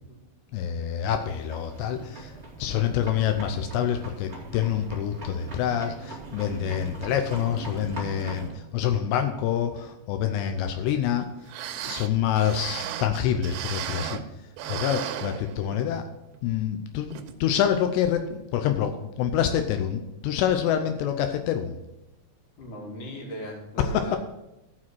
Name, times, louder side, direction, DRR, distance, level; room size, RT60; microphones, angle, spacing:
voice 1, 0.5-2.3 2.6-11.3 11.8-14.2 14.7-16.0 16.4-21.8 23.8-24.2, left 9 dB, 85° left, 7 dB, 2.9 m, -26 dB
sound 1, 1.2-8.5, right 2 dB, 20° right, 2.1 m, -40 dB
sound 2, 11.2-11.3 11.5-14.3 14.6-15.9 16.3-16.4 17.1-17.3 17.8-17.9, right 10 dB, 90° right, 2.8 m, -35 dB
voice 2, 22.6-24.2, equal, 55° left, -1 dB, 3.6 m, -38 dB
14.5 x 5.0 x 6.1 m, 0.93 s
omnidirectional pair, 4.9 m